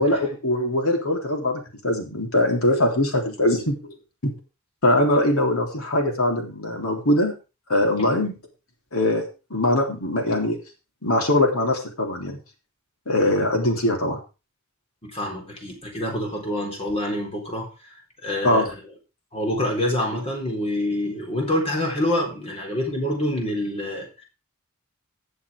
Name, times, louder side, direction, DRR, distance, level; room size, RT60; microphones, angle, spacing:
voice 1, 0.0-4.0 4.2-4.3 4.8-7.4 7.7-8.4 8.9-9.2 9.5-10.6 11.0-12.4 13.1-14.2 18.4-18.7, left 1 dB, 80° left, 2 dB, 3.5 m, -22 dB
voice 2, 15.0-17.7 18.2-18.8 19.3-24.2, left 1 dB, 30° left, 0 dB, 4.0 m, -26 dB
19.5 x 7.1 x 3.6 m, 0.31 s
head